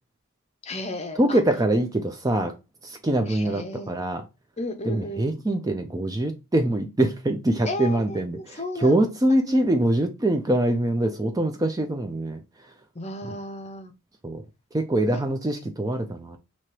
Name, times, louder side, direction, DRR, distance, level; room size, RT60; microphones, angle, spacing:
voice 1, 0.6-1.4 3.3-4.0 4.6-5.3 7.7-9.0 9.5-9.6 12.9-13.9 15.1-15.2, left 2 dB, 30° left, 0.6 m, -34 dB
voice 2, 1.2-2.5 2.8-4.2 4.9-12.4 14.2-14.4 14.7-16.4, right 1 dB, 15° right, 0.4 m, -24 dB
3.0 x 2.9 x 4.5 m
head